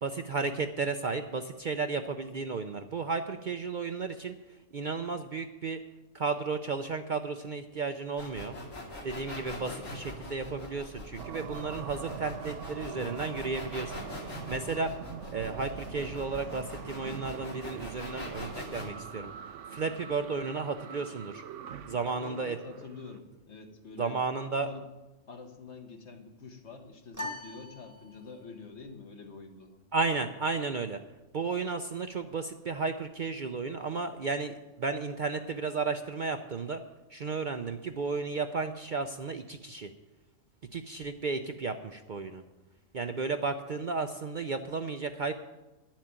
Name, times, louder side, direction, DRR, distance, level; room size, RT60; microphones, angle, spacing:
voice 1, 0.0-4.3 4.7-5.8 6.1-8.6 9.0-14.9 15.3-19.3 19.7-21.4 21.9-22.6 24.0-24.7 29.9-31.0 31.3-36.8 37.1-39.9 40.7-42.4 42.9-45.3, right 4 dB, 50° right, 7 dB, 0.6 m, -33 dB
sound 1, 8.2-18.9, left 1 dB, 85° left, 2.9 m, -42 dB
sound 2, 11.2-23.2, right 8 dB, 70° right, 1.0 m, -44 dB
voice 2, 22.2-24.2 24.6-24.9 25.3-29.8, left 4 dB, 60° left, 5 dB, 1.6 m, -46 dB
sound 3, 27.1-28.6, left 2 dB, 15° right, 1.1 m, -42 dB
11.5 x 7.4 x 8.8 m, 1.1 s
omnidirectional pair, 1.3 m